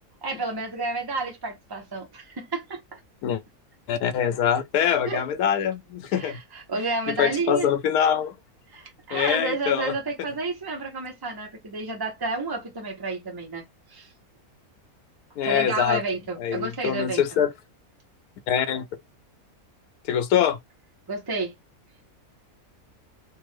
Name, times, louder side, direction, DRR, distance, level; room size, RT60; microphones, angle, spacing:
voice 1, 0.2-3.0 5.1-5.2 6.1-7.7 8.7-13.6 13.9-14.1 15.4-17.2 21.1-21.5, right 3 dB, 35° right, 0.4 m, -30 dB
voice 2, 3.9-6.4 7.2-8.3 9.1-9.9 15.4-16.0 16.4-17.5 18.5-18.9 20.1-20.6, left 9 dB, 85° left, 1.1 m, -24 dB
3.4 x 2.0 x 3.1 m
omnidirectional pair, 1.6 m